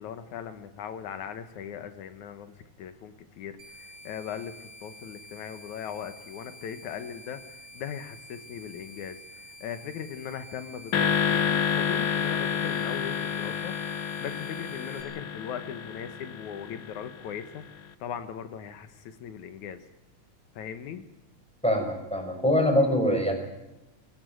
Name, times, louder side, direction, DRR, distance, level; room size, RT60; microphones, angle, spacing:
voice 1, 0.0-19.8 20.6-21.0, left 8 dB, 80° left, 10 dB, 2.6 m, -39 dB
sound 1, 3.6-15.0, equal, 55° right, 4.0 m, -48 dB
sound 2, 10.9-17.3, left 8 dB, 60° left, 1.5 m, -29 dB
voice 2, 21.6-23.3, left 1 dB, ahead, 3 dB, 6.3 m, -24 dB
22.0 x 16.5 x 9.2 m, 0.96 s
omnidirectional pair, 3.4 m